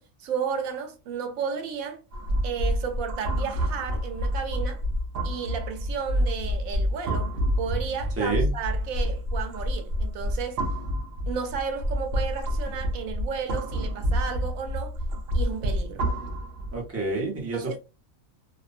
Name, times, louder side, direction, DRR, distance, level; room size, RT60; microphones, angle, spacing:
voice 1, 0.0-2.0 2.4-4.8 5.2-7.3 7.6-10.6 11.3-15.0 15.3-16.0 17.5-17.8, right 6 dB, 90° right, 1.1 m, -33 dB
sound 1, 2.1-16.8, equal, 60° right, 0.7 m, -28 dB
voice 2, 8.2-8.5 16.7-17.8, right 3 dB, 15° right, 0.5 m, -28 dB
2.5 x 2.1 x 2.4 m
omnidirectional pair, 1.4 m